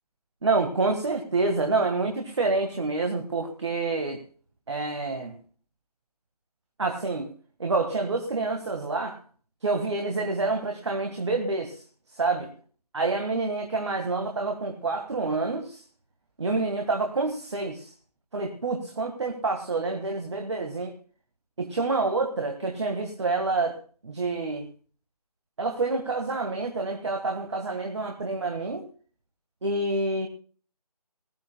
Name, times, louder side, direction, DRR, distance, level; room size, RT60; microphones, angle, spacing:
voice 1, 0.4-4.2 4.7-5.4 6.8-7.3 7.6-9.2 9.6-11.8 12.1-12.4 12.9-15.8 16.4-17.9 18.3-20.9 21.6-23.8 24.0-24.7 25.6-28.9 29.6-30.3, right 3 dB, 45° right, 4 dB, 1.7 m, -27 dB
20.0 x 14.0 x 2.2 m, 0.41 s
figure-of-eight pair, 155°, 20 cm